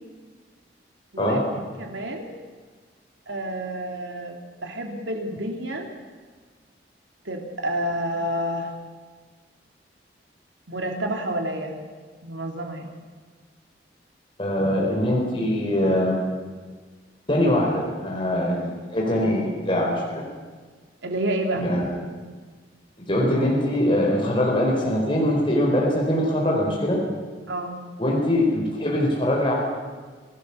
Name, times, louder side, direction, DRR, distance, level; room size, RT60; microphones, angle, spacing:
voice 1, 1.1-2.4 3.3-5.9 7.2-8.7 10.7-11.8 12.2-13.0 21.0-21.7 27.5-27.8, right 1 dB, 85° right, 3 dB, 3.3 m, -29 dB
voice 2, 14.4-16.2 17.3-20.3 21.6-22.0 23.1-27.0 28.0-29.5, left 1 dB, 25° left, -2 dB, 4.6 m, -22 dB
26.5 x 17.0 x 7.2 m, 1.5 s
head